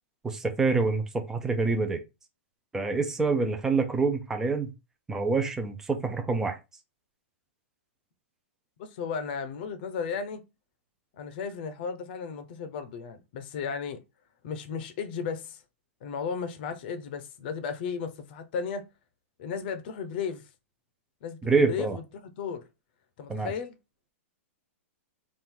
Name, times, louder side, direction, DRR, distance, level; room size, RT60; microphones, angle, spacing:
voice 1, 0.2-2.0 2.7-4.7 5.1-6.6 21.4-22.0 23.3-23.5, right 4 dB, 5° right, 0.6 m, -26 dB
voice 2, 8.8-10.4 11.1-14.0 14.4-15.6 16.0-18.9 19.4-20.4 21.2-22.6 23.2-23.8, left 6 dB, 45° left, 0.8 m, -35 dB
4.4 x 2.6 x 3.7 m
hypercardioid pair, 160°, 7 cm